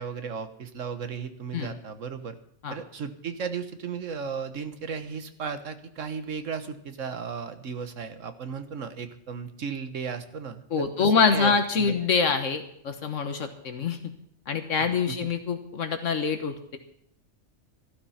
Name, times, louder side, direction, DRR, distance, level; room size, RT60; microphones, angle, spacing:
voice 1, 0.0-2.4 2.7-10.9 11.3-11.5 11.8-11.9 15.1-15.3, right 6 dB, 85° right, 9 dB, 1.6 m, -35 dB
voice 2, 10.7-14.1 14.5-16.8, left 5 dB, 80° left, 7 dB, 1.5 m, -25 dB
14.5 x 12.0 x 5.7 m, 0.72 s
omnidirectional pair, 1.3 m